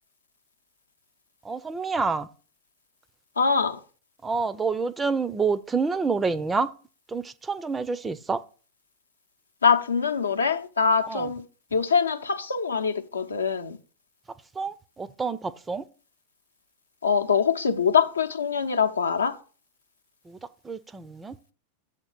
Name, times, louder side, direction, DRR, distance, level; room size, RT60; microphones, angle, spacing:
voice 1, 1.4-2.3 4.2-6.7 7.1-8.4 11.1-11.3 14.6-15.8 20.3-20.4 20.6-21.4, right 4 dB, 15° right, 0.4 m, -28 dB
voice 2, 3.4-3.8 9.6-11.4 11.7-13.8 17.0-19.4, left 6 dB, 75° left, 0.7 m, -23 dB
7.6 x 3.7 x 6.4 m
figure-of-eight pair, 90°, 0 cm